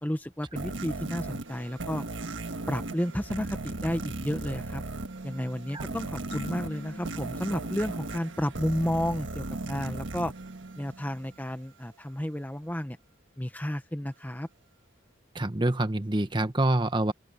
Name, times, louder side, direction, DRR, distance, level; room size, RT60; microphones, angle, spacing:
voice 1, 0.0-2.0 2.7-4.8 5.2-10.3 10.8-13.0 13.4-14.5, equal, 10° left, 1.0 m, -32 dB
sound 1, 0.6-11.3, right 2 dB, 75° right, 1.6 m, -37 dB
sound 2, 6.3-9.0, left 1 dB, 70° left, 2.9 m, -45 dB
voice 2, 15.3-17.1, right 1 dB, 25° right, 1.2 m, -26 dB
open air
head